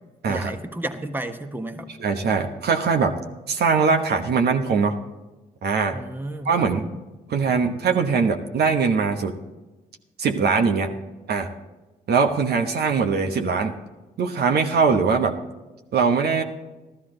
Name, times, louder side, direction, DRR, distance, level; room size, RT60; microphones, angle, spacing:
voice 1, 0.3-1.9 5.9-6.9, right 1 dB, 10° right, 6 dB, 1.2 m, -32 dB
voice 2, 2.0-3.1 3.5-4.9 5.6-6.0 6.4-6.8 7.3-9.3 10.2-10.9 11.3-11.5 12.1-13.8 14.2-15.3 15.9-16.4, right 5 dB, 60° right, 4 dB, 1.1 m, -21 dB
13.0 x 13.0 x 3.9 m, 1.1 s
hypercardioid pair, 50°, 19 cm